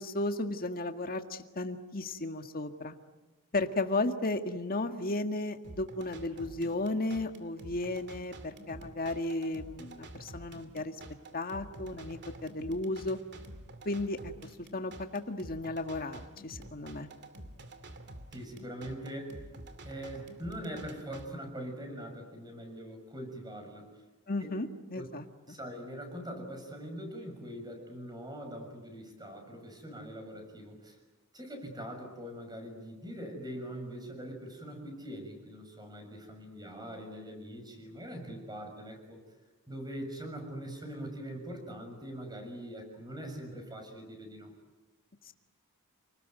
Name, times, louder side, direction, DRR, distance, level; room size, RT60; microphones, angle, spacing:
voice 1, 0.0-3.0 3.5-11.0 11.3-13.2 13.9-14.3 14.7-17.1 24.3-25.6 45.2-45.3, left 2 dB, 40° left, 6 dB, 1.8 m, -34 dB
sound 1, 5.6-21.3, right 1 dB, 50° right, 2.4 m, -49 dB
voice 2, 18.3-19.3 19.8-23.9 24.9-25.1 25.5-31.0 31.3-39.2 39.7-44.5, equal, 20° right, 4 dB, 6.4 m, -42 dB
29.5 x 20.0 x 9.4 m, 1.1 s
head